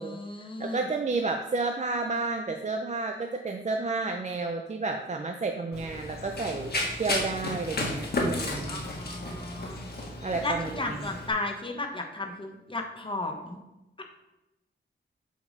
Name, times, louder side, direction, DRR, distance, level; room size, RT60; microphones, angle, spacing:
voice 1, 0.0-0.9 8.6-9.9 10.4-13.6, left 2 dB, 25° left, 3 dB, 1.0 m, -34 dB
voice 2, 0.6-6.7 7.0-8.8 10.2-11.0, right 3 dB, 35° right, 4 dB, 0.5 m, -31 dB
Run, 5.7-11.3, left 1 dB, 55° left, 1.4 m, -33 dB
6.9 x 5.0 x 4.0 m, 0.96 s
wide cardioid pair, 95°, 20 cm